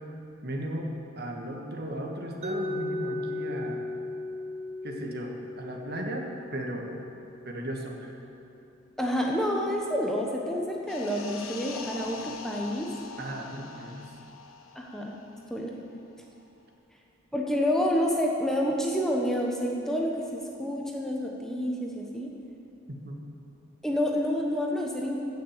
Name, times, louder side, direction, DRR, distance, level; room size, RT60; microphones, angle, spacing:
voice 1, 0.4-0.9 1.2-3.9 4.8-7.0 7.4-8.1 13.2-14.1 22.9-23.4, right 1 dB, 50° right, 1 dB, 1.5 m, -36 dB
Mallet percussion, 2.4-8.3, left 2 dB, 35° right, 0.7 m, -37 dB
voice 2, 9.0-12.9 14.7-15.2 15.5-15.7 17.3-22.3 23.8-25.2, equal, ahead, -1 dB, 1.0 m, -28 dB
sound 1, 10.9-16.0 16.2-16.4, left 5 dB, 85° left, 1.0 m, -43 dB
16.0 x 6.5 x 7.3 m, 2.7 s
head